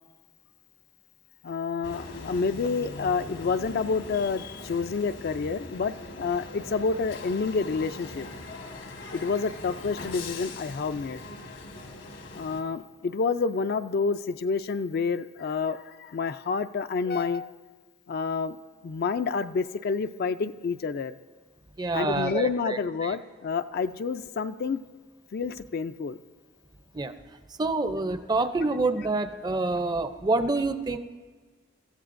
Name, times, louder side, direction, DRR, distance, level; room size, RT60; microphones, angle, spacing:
voice 1, 1.4-8.3 9.1-11.2 12.3-17.5 18.1-18.6 18.8-21.1 21.9-24.8 25.3-26.2, left 4 dB, 50° left, 11 dB, 0.4 m, -29 dB
sound 1, 1.8-12.6, left 2 dB, 75° left, 1.5 m, -41 dB
voice 2, 21.8-23.1 26.9-27.1 27.6-31.0, right 3 dB, 20° right, 10 dB, 0.5 m, -27 dB
23.0 x 15.0 x 2.5 m, 1.5 s
head